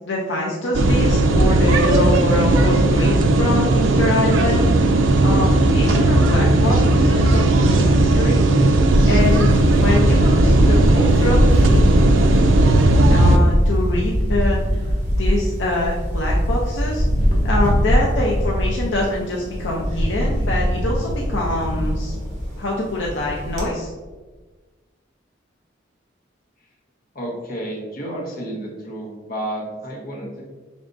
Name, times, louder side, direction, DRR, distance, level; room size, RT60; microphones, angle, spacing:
voice 1, 0.1-4.7 5.2-8.4 9.1-11.8 13.1-14.6 15.1-17.0 17.4-22.1 22.6-23.9, left 1 dB, 75° left, -3 dB, 0.6 m, -25 dB
sound 1, 0.7-13.4, right 2 dB, 90° right, 0.4 m, -16 dB
Camera, 8.9-23.7, equal, 40° right, 0.9 m, -21 dB
voice 2, 27.1-30.4, right 1 dB, 50° left, -3 dB, 1.0 m, -31 dB
5.3 x 3.4 x 2.6 m, 1.3 s
head